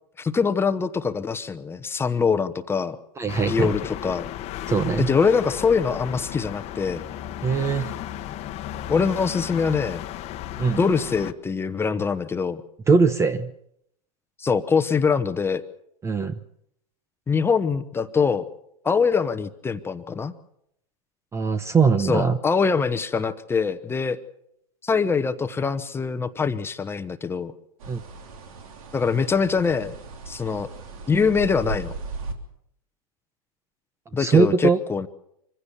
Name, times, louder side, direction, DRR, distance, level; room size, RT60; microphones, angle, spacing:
voice 1, 0.2-3.0 3.5-4.3 5.0-7.0 8.9-10.0 10.8-12.6 14.4-15.6 17.3-18.5 18.8-20.3 22.0-24.2 24.8-27.5 28.9-29.9 30.3-30.7 31.1-31.9 34.1-35.1, left 5 dB, 10° left, 10 dB, 1.0 m, -23 dB
voice 2, 3.2-3.7 4.7-5.1 7.4-7.9 10.6-10.8 12.9-13.5 16.0-16.4 21.3-22.4 27.9-28.0 34.2-34.8, right 5 dB, 15° right, 14 dB, 0.8 m, -21 dB
sound 1, 3.3-11.3, left 12 dB, 35° left, 1.1 m, -35 dB
sound 2, 27.8-32.3, right 3 dB, 70° right, 3.4 m, -37 dB
25.0 x 16.0 x 7.0 m, 0.75 s
hypercardioid pair, 130°, 19 cm